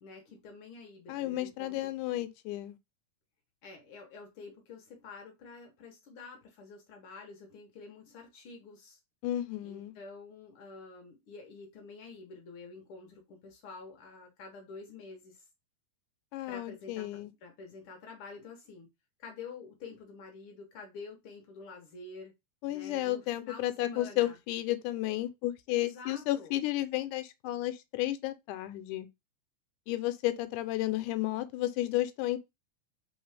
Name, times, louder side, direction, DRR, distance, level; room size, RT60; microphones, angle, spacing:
voice 1, 0.0-1.9 3.6-9.0 9.6-15.5 16.5-18.9 19.2-22.3 22.7-24.4 25.7-26.6, left 4 dB, 70° left, 1.3 m, -48 dB
voice 2, 1.1-2.8 9.2-9.9 16.3-17.3 22.6-29.1 29.9-32.4, left 15 dB, 85° left, 2.1 m, -32 dB
4.3 x 3.5 x 3.3 m
omnidirectional pair, 3.6 m